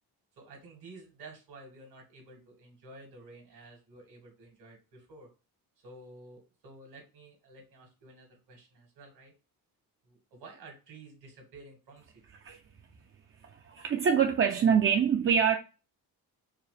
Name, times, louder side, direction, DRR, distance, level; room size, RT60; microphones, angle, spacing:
voice 1, 0.3-5.3 5.8-9.3 10.0-12.4 12.9-13.1, right 2 dB, 80° right, 1.9 m, -52 dB
voice 2, 13.4-15.6, right 7 dB, 35° right, 0.4 m, -25 dB
4.7 x 2.0 x 3.3 m
cardioid pair, 105°, 38 cm